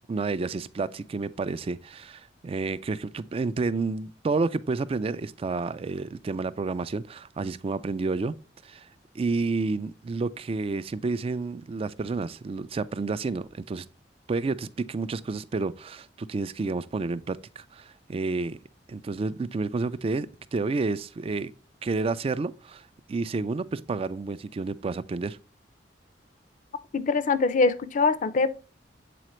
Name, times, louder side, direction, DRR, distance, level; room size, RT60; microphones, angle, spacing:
voice 1, 0.1-8.3 8.6-8.9 9.1-13.9 14.3-18.6 18.9-21.5 21.8-25.4, right 3 dB, 30° right, 0.3 m, -30 dB
voice 2, 26.9-28.6, left 4 dB, 45° left, 0.5 m, -23 dB
7.7 x 4.1 x 3.0 m
head